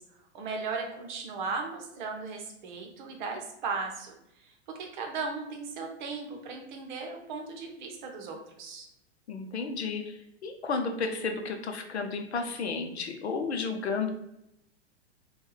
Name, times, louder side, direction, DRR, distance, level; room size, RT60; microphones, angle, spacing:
voice 1, 0.3-4.1 4.8-8.9, right 4 dB, 45° right, 3 dB, 0.8 m, -36 dB
voice 2, 9.3-10.1 10.4-14.1, left 4 dB, 70° left, 5 dB, 0.6 m, -32 dB
4.3 x 2.3 x 3.2 m, 0.83 s
figure-of-eight pair, 100°, 34 cm